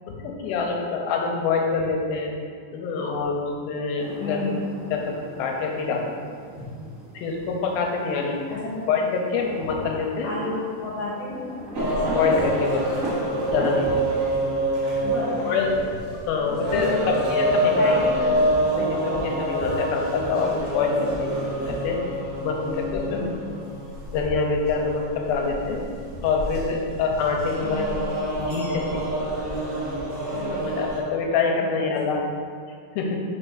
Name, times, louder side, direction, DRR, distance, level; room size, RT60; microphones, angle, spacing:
voice 1, 0.1-2.3 2.7-4.5 4.9-5.0 5.4-6.4 7.1-8.4 8.9-10.4 12.0-12.9 13.5-14.1 14.3-14.4 15.4-15.7 16.1-17.9 18.8-21.3 21.6-22.0 22.4-23.4 24.1-25.8 26.2-27.9 28.4-28.8 29.2-29.3 30.3-32.2 33.0-33.2, left 4 dB, 85° left, 1 dB, 2.5 m, -26 dB
sound 1, 4.0-13.9, right 1 dB, 50° right, 0.9 m, -37 dB
voice 2, 4.2-4.5 8.5-8.7 10.2-11.6 15.0-15.5 16.4-17.1 17.7-18.9 23.1-23.4 27.6-28.0 31.6-31.7 32.1-32.2, left 3 dB, 60° left, -7 dB, 2.0 m, -32 dB
sound 2, 11.7-31.0, right 1 dB, 80° right, 0.9 m, -27 dB
5.6 x 4.4 x 3.9 m, 2.1 s
omnidirectional pair, 4.2 m